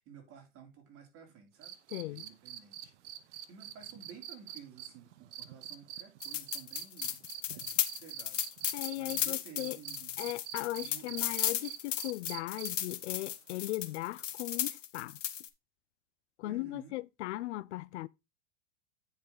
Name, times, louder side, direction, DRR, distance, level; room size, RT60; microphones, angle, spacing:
voice 1, 0.0-2.9 3.5-7.2 7.5-8.5 9.0-10.2 10.8-11.4 16.4-17.0, right 7 dB, 40° right, 3.2 m, -54 dB
sound 1, 1.6-9.2 9.6-12.9 14.6-14.7, right 12 dB, 70° right, 1.1 m, -44 dB
voice 2, 1.9-2.2 8.7-9.8 10.2-15.2 16.4-18.1, left 17 dB, 70° left, 0.5 m, -38 dB
sound 2, 6.2-15.5, left 10 dB, 90° left, 1.0 m, -35 dB
9.2 x 5.3 x 3.9 m
hypercardioid pair, 115°, 36 cm